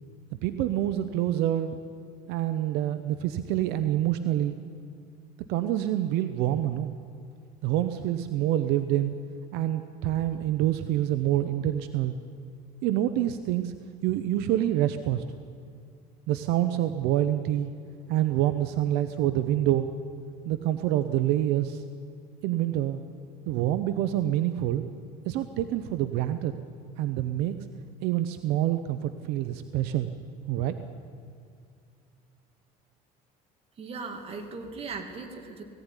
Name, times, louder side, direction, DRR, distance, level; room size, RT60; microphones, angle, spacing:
voice 1, 0.4-1.8 2.3-4.6 5.5-6.9 7.6-9.1 9.5-12.2 12.8-13.7 14.0-15.2 16.3-17.7 18.1-19.9 20.4-21.8 22.4-23.0 23.5-24.8 25.2-26.5 27.0-27.5 28.0-30.1 30.5-30.7, right 12 dB, 75° right, 10 dB, 0.9 m, -26 dB
voice 2, 33.8-35.6, right 4 dB, 35° right, 4 dB, 2.5 m, -38 dB
18.5 x 16.0 x 10.0 m, 2.3 s
cardioid pair, 155°, 17 cm